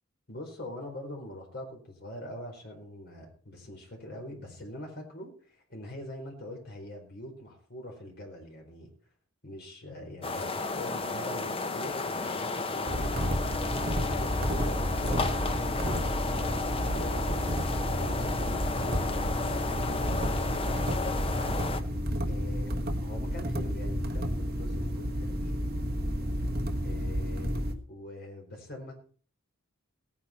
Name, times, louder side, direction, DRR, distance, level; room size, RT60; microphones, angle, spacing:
voice 1, 0.3-8.9 9.4-13.1 13.8-16.1 16.6-21.1 22.3-25.6 26.8-27.6 27.9-28.9, left 1 dB, 50° left, 1 dB, 4.6 m, -43 dB
sound 1, 10.2-21.8, left 3 dB, 25° left, 0.8 m, -33 dB
sound 2, 12.9-27.8, equal, 50° right, 1.6 m, -31 dB
17.5 x 9.8 x 4.5 m, 0.43 s
head